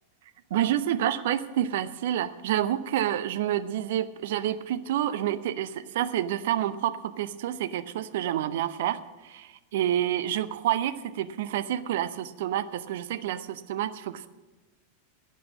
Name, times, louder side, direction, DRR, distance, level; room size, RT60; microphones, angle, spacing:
voice 1, 0.5-14.3, right 11 dB, 55° right, 16 dB, 0.6 m, -28 dB
12.0 x 8.4 x 7.4 m, 1.2 s
figure-of-eight pair, 90°, 0 cm